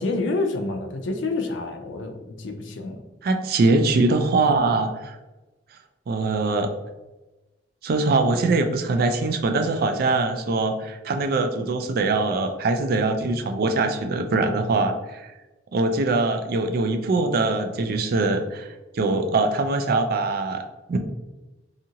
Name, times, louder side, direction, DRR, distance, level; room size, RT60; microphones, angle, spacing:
voice 1, 0.0-3.0, left 3 dB, 80° left, 5 dB, 0.4 m, -28 dB
voice 2, 3.2-5.2 6.1-6.7 7.8-15.3 15.7-21.0, right 3 dB, 55° right, 6 dB, 0.3 m, -23 dB
2.7 x 2.4 x 2.7 m, 1.1 s
head